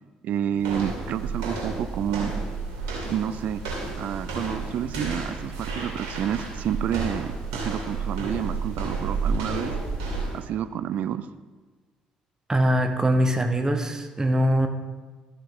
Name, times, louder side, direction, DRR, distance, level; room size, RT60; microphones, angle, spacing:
voice 1, 0.2-2.3 3.1-3.6 4.0-9.7 10.3-11.3, right 9 dB, 55° right, 13 dB, 0.5 m, -29 dB
sound 1, 0.6-10.5, right 3 dB, 75° right, 2.5 m, -31 dB
voice 2, 12.5-14.7, equal, 20° right, 5 dB, 1.4 m, -22 dB
13.5 x 5.8 x 4.1 m, 1.3 s
figure-of-eight pair, 50°, 3 cm